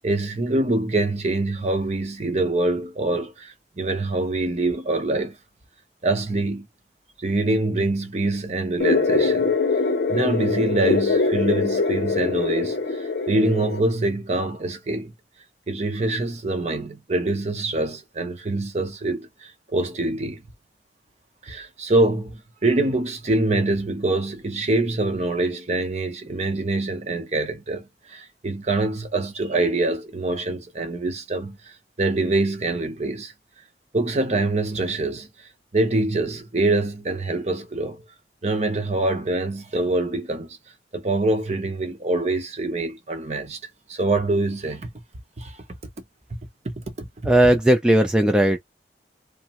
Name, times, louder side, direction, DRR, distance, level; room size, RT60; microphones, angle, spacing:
voice 1, 0.0-5.4 6.0-6.7 7.2-9.5 10.1-15.1 15.7-20.4 21.4-31.6 32.0-33.3 33.9-35.3 35.7-38.0 38.4-40.6 40.9-43.6 43.9-44.9 45.4-45.6 46.6-47.1, right 2 dB, 40° right, 0.7 m, -25 dB
sound 1, 8.8-13.8, left 4 dB, 70° left, 0.6 m, -23 dB
voice 2, 47.2-48.6, right 1 dB, 5° right, 0.3 m, -17 dB
2.9 x 2.0 x 2.9 m
head